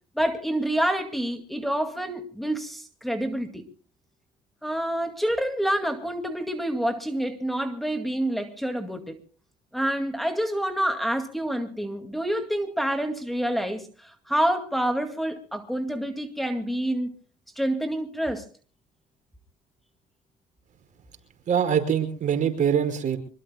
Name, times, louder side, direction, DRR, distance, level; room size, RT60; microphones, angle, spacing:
voice 1, 0.2-3.7 4.6-9.2 9.7-17.1 17.6-18.5, right 1 dB, ahead, 2.1 m, -27 dB
voice 2, 21.5-23.2, right 8 dB, 50° right, 5.4 m, -23 dB
26.0 x 22.0 x 2.2 m
cardioid pair, 110°, 17 cm